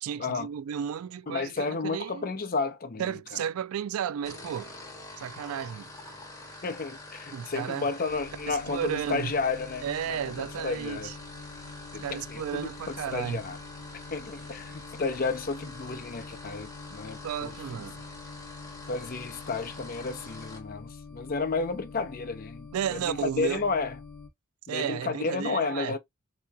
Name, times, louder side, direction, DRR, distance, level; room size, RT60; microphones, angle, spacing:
voice 1, 0.0-2.3 3.0-4.7 5.2-5.9 7.3-7.9 8.5-9.3 9.8-11.2 12.0-13.4 17.2-18.0 22.7-23.6 24.7-26.0, right 8 dB, 80° right, 0.3 m, -33 dB
voice 2, 1.3-3.4 6.6-9.9 10.4-11.1 11.9-13.6 14.1-17.5 18.9-24.0 24.7-26.0, left 4 dB, 40° left, 0.6 m, -32 dB
sound 1, 4.2-20.7, left 1 dB, 15° left, 1.0 m, -46 dB
sound 2, 8.1-24.3, left 4 dB, 85° left, 0.8 m, -46 dB
3.8 x 2.8 x 2.2 m
head